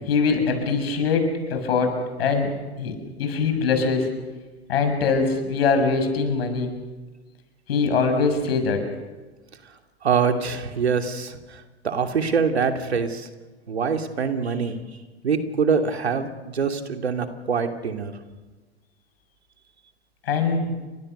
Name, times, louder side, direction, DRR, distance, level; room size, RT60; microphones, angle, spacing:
voice 1, 0.0-2.5 2.8-4.1 4.7-6.8 7.7-8.9 20.2-20.7, left 4 dB, 70° left, 6 dB, 6.8 m, -22 dB
voice 2, 10.0-11.4 11.8-13.3 13.7-14.8 15.2-18.1, right 5 dB, 80° right, 5 dB, 2.8 m, -24 dB
30.0 x 25.0 x 6.7 m, 1.2 s
figure-of-eight pair, 95°, 32 cm